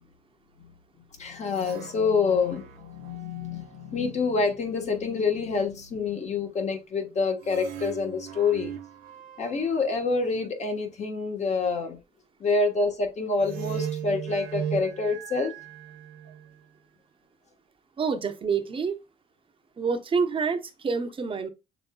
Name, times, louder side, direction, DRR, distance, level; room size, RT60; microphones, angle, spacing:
voice 1, 1.2-8.8 9.4-12.0 12.4-15.5, left 4 dB, 40° left, 1.4 m, -27 dB
sound 1, 1.4-4.0 7.4-10.5 13.4-16.5, right 9 dB, 85° right, 1.1 m, -38 dB
voice 2, 18.0-19.0 19.8-21.5, right 5 dB, 30° right, 0.9 m, -27 dB
6.7 x 3.4 x 2.3 m
cardioid pair, 110°, 17 cm